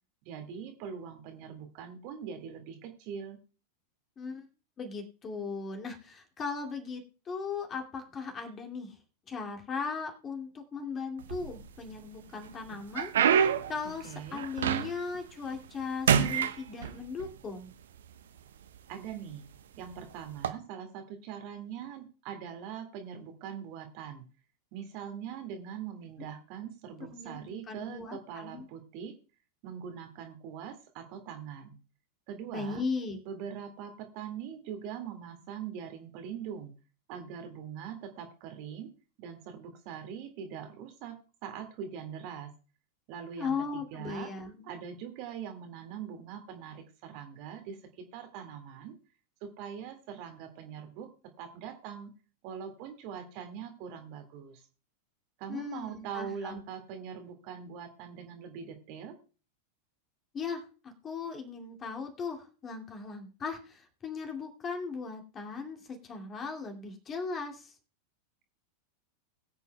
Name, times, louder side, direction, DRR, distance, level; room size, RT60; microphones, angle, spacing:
voice 1, 0.3-3.4 14.0-14.4 18.9-19.5 19.8-24.2 24.7-29.1 29.6-31.8 32.3-32.8 33.3-36.7 37.1-38.9 39.2-41.2 41.4-42.5 43.1-44.3 44.6-47.8 48.1-48.9 49.4-51.1 51.4-52.1 52.4-54.6 55.4-59.2, right 8 dB, 45° right, 5 dB, 2.0 m, -42 dB
voice 2, 4.2-4.5 4.8-9.0 9.3-17.7 26.2-26.3 27.0-28.7 32.5-33.2 43.4-44.7 55.5-56.6 60.3-67.7, left 5 dB, 25° left, 3 dB, 2.3 m, -38 dB
sound 1, 11.2-11.9 12.4-15.2 15.5-17.3 18.1-18.2 18.9-19.1 20.3-20.5, right 8 dB, 60° right, 0.9 m, -27 dB
21.0 x 8.3 x 2.2 m, 0.35 s
figure-of-eight pair, 90°, 0 cm